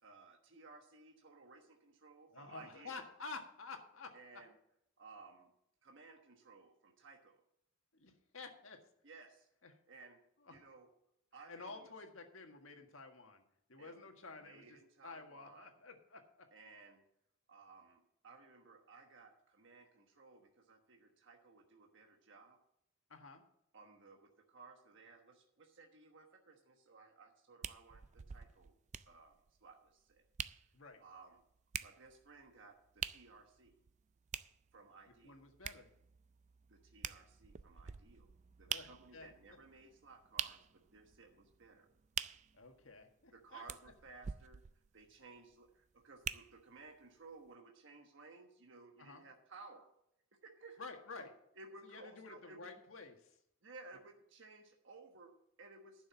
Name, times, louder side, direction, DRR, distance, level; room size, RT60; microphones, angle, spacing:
voice 1, 0.0-3.0 4.1-4.5 5.0-5.5 5.8-7.4 9.0-9.5 9.9-10.2 10.5-10.9 11.3-11.9 13.8-14.1 14.4-15.7 16.5-17.0 17.5-22.6 23.7-28.7 29.1-30.2 31.0-31.4 31.8-33.7 34.7-35.4 36.7-38.3 38.6-41.9 43.3-44.6 44.9-49.9 50.4-50.8 51.2-52.7 53.6-56.1, right 3 dB, 60° right, 2 dB, 1.3 m, -58 dB
voice 2, 2.3-4.1 7.9-8.8 9.6-9.7 10.5-10.6 11.5-13.4 13.7-16.5 23.1-23.4 30.7-31.0 35.2-35.9 38.7-39.3 42.5-43.6 49.0-49.2 50.8-51.3 51.8-53.4, left 3 dB, 70° left, 4 dB, 1.7 m, -51 dB
sound 1, 27.6-46.9 47.5-47.6, right 9 dB, 35° right, 0.3 m, -47 dB
11.0 x 6.3 x 7.3 m, 0.76 s
head